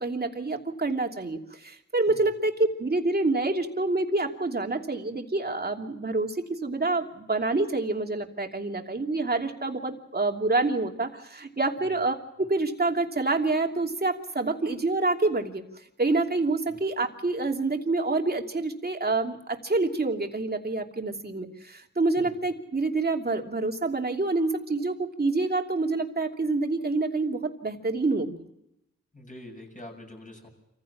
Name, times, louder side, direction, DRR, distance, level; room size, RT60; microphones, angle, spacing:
voice 1, 0.0-15.6 16.0-28.5, right 3 dB, 30° right, 3 dB, 2.9 m, -27 dB
voice 2, 29.1-30.5, left 1 dB, 25° left, 3 dB, 7.2 m, -45 dB
27.0 x 15.5 x 7.3 m, 0.87 s
cardioid pair, 70°, 31 cm